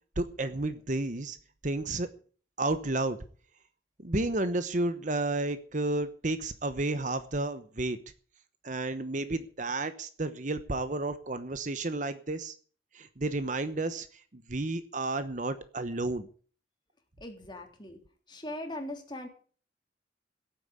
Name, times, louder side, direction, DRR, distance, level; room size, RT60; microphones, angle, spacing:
voice 1, 0.2-1.4 1.6-2.1 2.6-3.2 4.0-8.0 8.6-12.5 12.9-14.1 14.3-16.3, right 2 dB, 45° right, 12 dB, 1.0 m, -31 dB
voice 2, 17.2-18.0 18.3-19.3, left 1 dB, 25° left, 3 dB, 3.3 m, -40 dB
16.0 x 8.9 x 8.3 m, 0.44 s
head